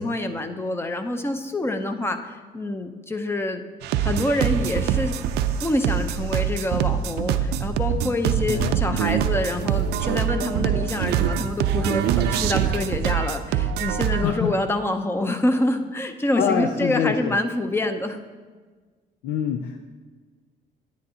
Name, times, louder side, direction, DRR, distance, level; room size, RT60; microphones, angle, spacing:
voice 1, 0.0-3.6 4.0-5.2 5.6-18.2, left 1 dB, 15° left, 7 dB, 0.6 m, -26 dB
sound 1, 3.8-14.2, right 9 dB, 80° right, 0.5 m, -24 dB
voice 2, 14.2-14.5 16.4-17.4 19.2-19.8, left 8 dB, 80° left, 6 dB, 0.5 m, -25 dB
10.5 x 9.7 x 2.8 m, 1.4 s
cardioid pair, 110°, 17 cm